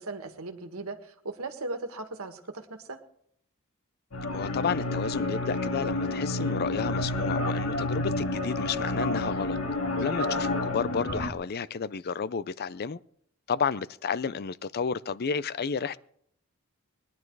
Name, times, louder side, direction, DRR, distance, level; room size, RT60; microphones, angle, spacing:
voice 1, 0.0-3.0 10.2-10.3, right 2 dB, 85° right, 1.7 m, -38 dB
sound 1, 4.1-11.3, left 2 dB, 75° left, 1.9 m, -29 dB
voice 2, 4.3-9.6 9.9-13.0 13.5-16.0, left 6 dB, 50° left, 0.5 m, -31 dB
20.5 x 11.0 x 4.7 m
head